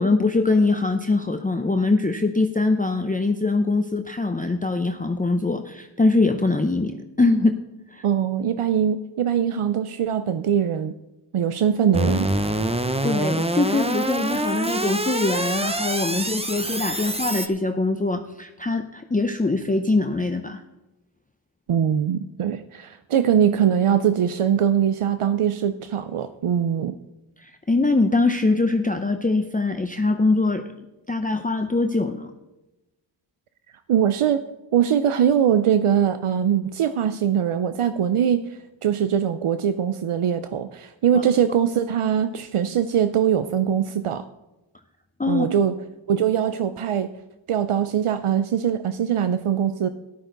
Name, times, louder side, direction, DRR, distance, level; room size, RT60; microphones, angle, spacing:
voice 1, 0.0-7.6 7.9-8.0 13.0-20.6 27.4-30.6 31.1-32.3 41.1-41.2 45.2-45.5, left 3 dB, 15° left, 6 dB, 0.6 m, -22 dB
voice 2, 8.0-10.9 11.3-12.3 21.7-27.0 33.9-34.4 34.7-38.5 38.8-44.2 45.3-45.7 46.1-47.1 47.5-49.9, right 9 dB, 80° right, 11 dB, 0.6 m, -22 dB
sound 1, 11.9-17.5, right 1 dB, 10° right, 0.8 m, -25 dB
13.5 x 11.5 x 3.9 m, 1.0 s
wide cardioid pair, 70°, 50 cm